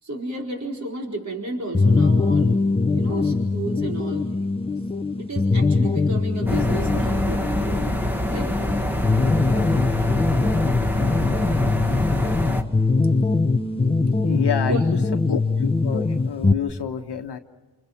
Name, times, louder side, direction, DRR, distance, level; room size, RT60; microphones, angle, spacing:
voice 1, 0.0-2.7 2.9-4.4 5.2-7.7 8.3-8.6 14.7-15.4, right 1 dB, 40° right, 0 dB, 4.6 m, -32 dB
sound 1, 1.7-16.5, left 3 dB, 15° left, 0.9 m, -22 dB
sound 2, 6.5-12.6, left 1 dB, 5° right, 1.9 m, -25 dB
voice 2, 14.2-15.0 15.3-17.4, left 8 dB, 65° left, 5 dB, 1.4 m, -28 dB
29.0 x 29.0 x 5.9 m, 1.2 s
wide cardioid pair, 115°, 43 cm